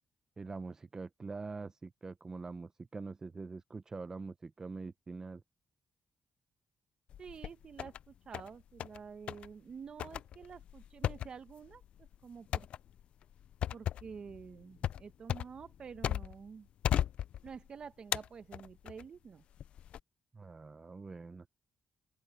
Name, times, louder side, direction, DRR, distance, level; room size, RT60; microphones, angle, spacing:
voice 1, 0.4-5.4 20.3-21.5, right 4 dB, 30° right, 0.7 m, -44 dB
sound 1, 7.1-8.0 8.3-9.0 9.3-9.5 10.0-16.5 16.8-17.7 18.1-19.0 19.6-20.0, left 10 dB, 75° left, 0.5 m, -36 dB
voice 2, 7.2-12.7 13.7-16.7 17.4-19.4, right 6 dB, 50° right, 1.4 m, -49 dB
open air
cardioid pair, 110°, 2 cm